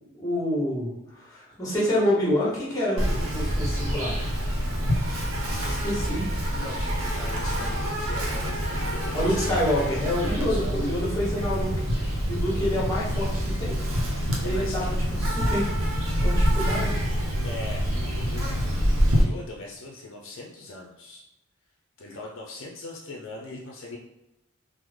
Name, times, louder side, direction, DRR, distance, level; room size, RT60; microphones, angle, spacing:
voice 1, 0.1-4.2 5.6-6.2 9.1-13.3 13.6-13.8 14.4-17.0, left 1 dB, 15° left, -5 dB, 1.0 m, -28 dB
Insect, 3.0-19.2, equal, 70° right, 0.7 m, -26 dB
voice 2, 5.5-5.9 6.5-9.6 10.2-10.9 14.4-15.0 17.4-18.7 19.1-21.2 22.0-24.0, left 2 dB, 60° left, -1 dB, 0.5 m, -40 dB
3.5 x 2.0 x 3.1 m, 0.92 s
head